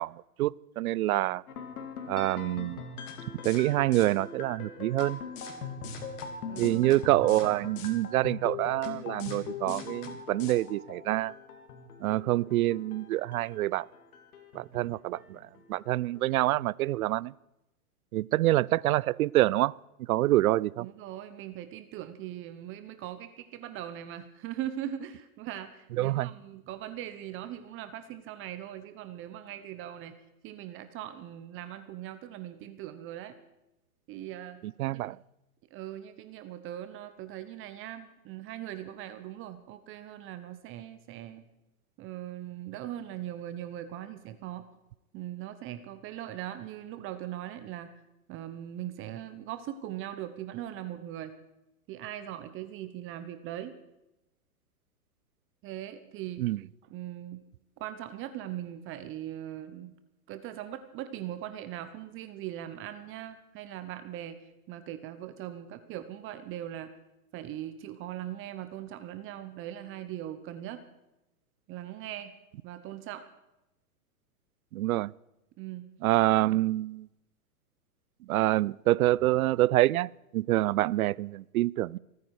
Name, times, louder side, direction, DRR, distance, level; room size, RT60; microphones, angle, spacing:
voice 1, 0.0-1.4 2.1-2.8 3.4-5.2 6.6-11.3 12.0-13.9 14.5-17.3 18.1-20.9 25.9-26.3 34.6-35.2 56.4-56.6 74.7-75.1 76.0-77.1 78.2-82.0, right 16 dB, 65° right, 25 dB, 0.5 m, -26 dB
sound 1, 1.5-16.7, left 6 dB, 70° left, 2.5 m, -42 dB
sound 2, 3.1-3.2 3.4-3.6 3.9-4.1 5.0-5.1 5.4-5.5 5.8-6.3 6.6-7.0 7.3-7.5 7.8-7.9 8.8-8.9 9.2-9.4 9.7-10.1 10.4-10.5, left 8 dB, 55° left, 2.9 m, -44 dB
voice 2, 6.5-6.9 20.8-30.1 30.4-33.3 34.1-34.6 34.9-35.0 35.7-41.4 42.0-44.6 45.1-47.9 48.3-51.3 51.9-53.7 55.6-56.4 56.9-57.4 57.8-59.9 60.3-64.4 64.7-66.9 67.3-70.8 71.7-72.3 72.6-73.2 75.6-75.9, right 12 dB, 25° right, 11 dB, 0.9 m, -40 dB
26.0 x 9.6 x 4.8 m, 0.92 s
hypercardioid pair, 120°, 46 cm